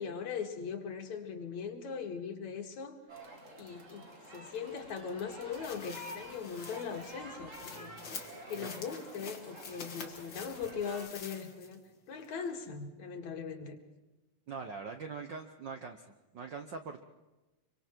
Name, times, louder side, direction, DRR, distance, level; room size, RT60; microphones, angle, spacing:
voice 1, 0.0-3.0 3.6-7.9 8.5-11.8 12.1-13.8, left 6 dB, 70° left, 3 dB, 3.2 m, -40 dB
sound 1, 3.1-11.1, right 1 dB, 30° right, 2.1 m, -49 dB
sound 2, 5.5-11.9 12.2-12.3, left 5 dB, 45° left, 2.2 m, -48 dB
voice 2, 14.5-16.0 16.3-17.0, right 5 dB, 65° right, 6 dB, 1.1 m, -42 dB
25.5 x 24.5 x 4.5 m, 1.1 s
omnidirectional pair, 3.4 m